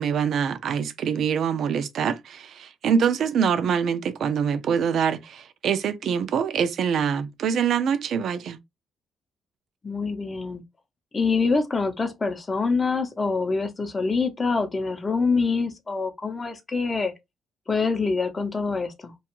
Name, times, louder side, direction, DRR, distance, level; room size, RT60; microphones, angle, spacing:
voice 1, 0.0-8.6, right 7 dB, 65° right, 0.4 m, -24 dB
voice 2, 9.8-10.6 11.1-17.1 17.7-19.1, left 4 dB, 30° left, 0.6 m, -25 dB
2.4 x 2.3 x 2.9 m
cardioid pair, 90°, 0 cm